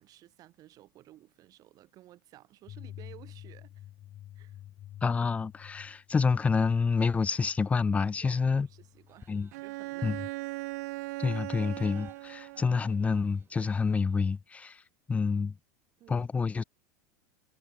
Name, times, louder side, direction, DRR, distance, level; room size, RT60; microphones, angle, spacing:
voice 1, 0.0-3.9 4.3-4.6 8.2-9.3 9.6-10.3 16.0-16.3, right 14 dB, 40° right, 4.3 m, -55 dB
sound 1, 2.6-9.5, left 12 dB, 40° left, 5.2 m, -50 dB
voice 2, 5.0-8.7 9.3-9.5 10.0-10.2 11.2-14.8 15.1-15.5 16.1-16.6, left 5 dB, 15° left, 0.6 m, -28 dB
sound 2, 6.5-14.4, right 7 dB, 25° right, 7.7 m, -64 dB
Bowed string instrument, 9.5-13.0, right 22 dB, 70° right, 1.1 m, -39 dB
supercardioid pair, 125°, 9 cm